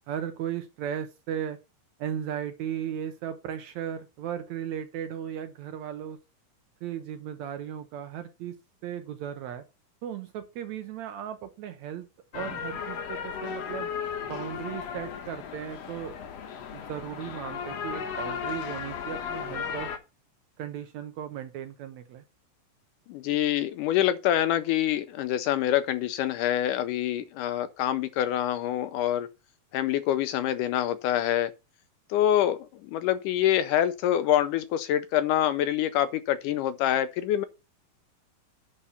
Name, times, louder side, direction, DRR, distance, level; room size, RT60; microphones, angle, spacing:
voice 1, 0.1-1.6 2.0-6.2 6.8-8.5 8.8-9.6 10.0-12.0 12.3-13.9 14.2-16.1 16.7-19.9 20.6-22.2, right 9 dB, 75° right, 1.6 m, -36 dB
sound 1, 12.3-20.0, left 7 dB, 60° left, 1.9 m, -35 dB
voice 2, 23.1-29.3 29.7-31.5 32.1-32.6 32.9-37.5, left 11 dB, 80° left, 2.0 m, -26 dB
10.0 x 4.8 x 5.5 m
omnidirectional pair, 4.1 m